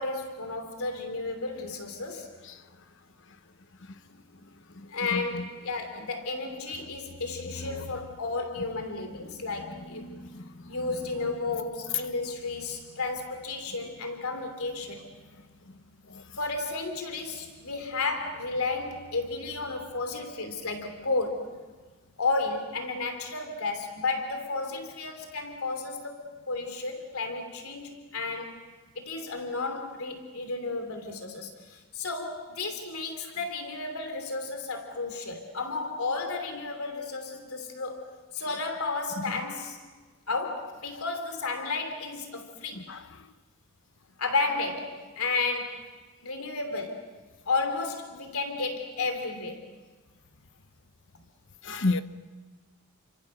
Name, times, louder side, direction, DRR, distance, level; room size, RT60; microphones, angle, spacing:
voice 1, 0.0-2.3 4.9-10.1 10.7-15.1 16.4-21.5 22.2-28.6 28.9-38.0 38.3-39.8 40.3-42.9 44.2-45.9 46.2-47.1 47.5-49.7, left 3 dB, 80° left, 3.0 m, -32 dB
voice 2, 10.0-10.7 42.8-43.0 51.6-52.0, left 2 dB, 60° left, 1.1 m, -30 dB
30.0 x 25.5 x 6.6 m
head